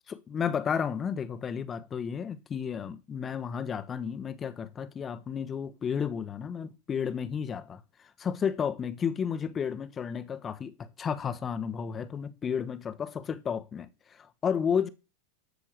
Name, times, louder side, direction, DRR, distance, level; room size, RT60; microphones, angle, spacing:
voice 1, 0.1-14.9, left 7 dB, 25° left, 1.2 m, -32 dB
13.5 x 5.5 x 6.7 m
figure-of-eight pair, 85°, 0 cm